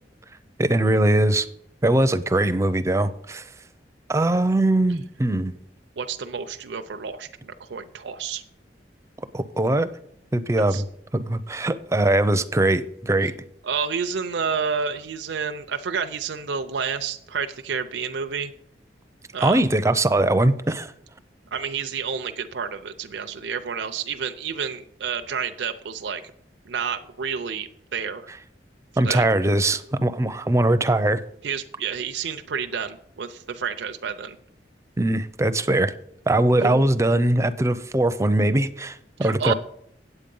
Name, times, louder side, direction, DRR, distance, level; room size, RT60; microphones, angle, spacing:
voice 1, 0.6-1.5 1.8-3.5 4.1-5.5 9.3-9.9 10.3-10.8 11.1-13.3 19.4-20.9 29.0-31.2 35.0-35.9 36.3-39.5, right 1 dB, 15° right, 0.5 m, -21 dB
voice 2, 6.0-8.4 10.7-10.8 13.6-18.5 19.3-19.6 21.5-26.2 26.7-28.3 28.9-29.2 31.4-34.4 36.6-36.9 39.2-39.5, right 6 dB, 85° right, 0.5 m, -29 dB
8.7 x 8.2 x 5.4 m
head